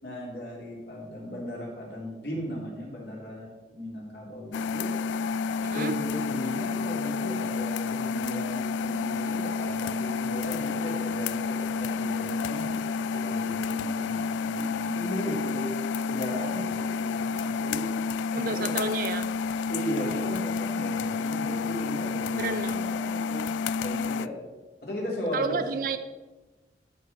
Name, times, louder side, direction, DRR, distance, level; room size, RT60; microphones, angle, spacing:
voice 1, 0.0-4.9 5.7-12.8 13.1-17.8 18.3-18.7 19.7-23.5 23.8-24.4 24.8-25.6, equal, 65° left, -3 dB, 3.2 m, -36 dB
sound 1, 4.5-24.3, left 5 dB, 85° left, 0.3 m, -30 dB
voice 2, 5.6-5.9 18.3-19.3 22.4-22.9 25.3-26.0, right 4 dB, 50° right, 10 dB, 0.4 m, -31 dB
13.0 x 5.4 x 4.3 m, 1.2 s
head